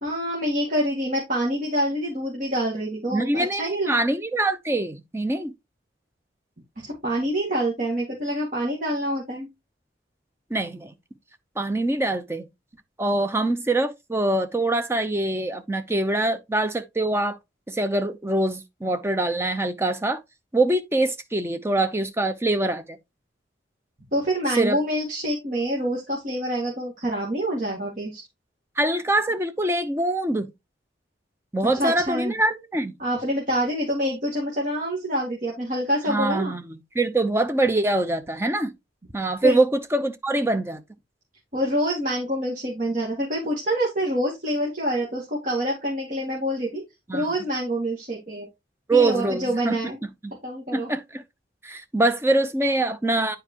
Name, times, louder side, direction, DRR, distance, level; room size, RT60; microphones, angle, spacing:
voice 1, 0.0-3.9 6.8-9.5 24.1-28.2 31.8-32.3 33.0-36.6 39.4-39.6 41.5-46.8 47.1-48.5 48.9-50.0 50.4-50.9, equal, 45° right, 2.2 m, -26 dB
voice 2, 3.1-5.5 10.5-10.9 11.6-12.5 13.0-17.4 17.7-20.2 20.5-23.0 24.6-24.8 28.8-30.5 31.5-32.9 36.1-38.7 39.1-40.8 47.1-47.4 48.9-49.8 50.2-50.3 50.7-51.2 51.6-53.4, right 2 dB, 15° right, 0.7 m, -24 dB
9.7 x 4.6 x 3.0 m
head